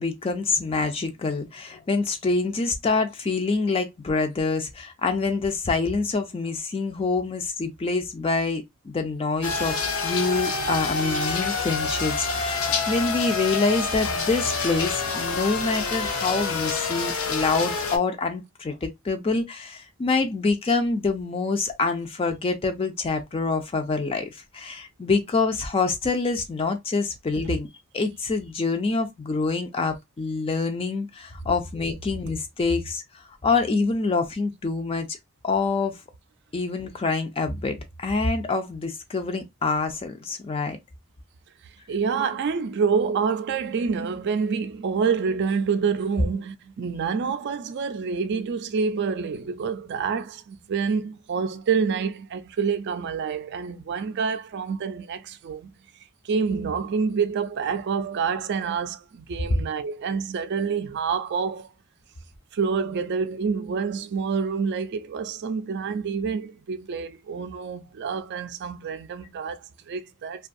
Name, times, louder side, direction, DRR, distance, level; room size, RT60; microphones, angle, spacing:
voice 1, 0.0-27.7 27.9-35.2 35.4-36.0 36.5-40.8, left 3 dB, 25° left, 0.4 m, -26 dB
sound 1, 9.4-18.0, left 4 dB, 90° left, 0.6 m, -27 dB
voice 2, 41.6-55.7 56.2-61.7 62.5-70.5, right 5 dB, 55° right, 0.4 m, -27 dB
2.5 x 2.3 x 2.5 m
head